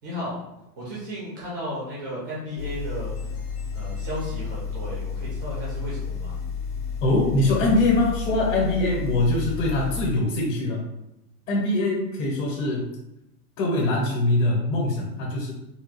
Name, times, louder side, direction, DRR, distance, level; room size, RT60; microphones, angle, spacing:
voice 1, 0.0-0.4 0.8-3.1 3.7-6.4 9.3-9.5, equal, 15° right, -7 dB, 0.3 m, -34 dB
sound 1, 2.6-10.1, left 5 dB, 65° left, 0.9 m, -31 dB
voice 2, 7.0-10.8 11.5-12.9 13.6-15.5, left 2 dB, 45° left, -2 dB, 1.1 m, -23 dB
3.7 x 2.3 x 3.0 m, 0.86 s
hypercardioid pair, 150°, 49 cm